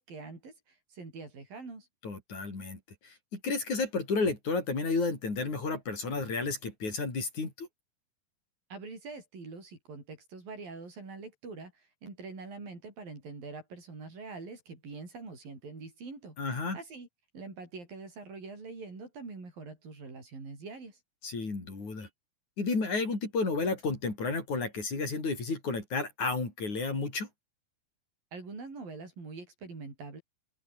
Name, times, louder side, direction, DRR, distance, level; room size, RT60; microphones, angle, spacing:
voice 1, 0.0-1.9 8.7-16.4 16.7-17.1 17.3-21.0 28.3-30.2, right 4 dB, 70° right, 9.4 m, -44 dB
voice 2, 2.0-7.7 16.4-16.8 21.2-22.1 22.6-27.3, left 3 dB, 50° left, 7.5 m, -32 dB
omnidirectional pair, 4.2 m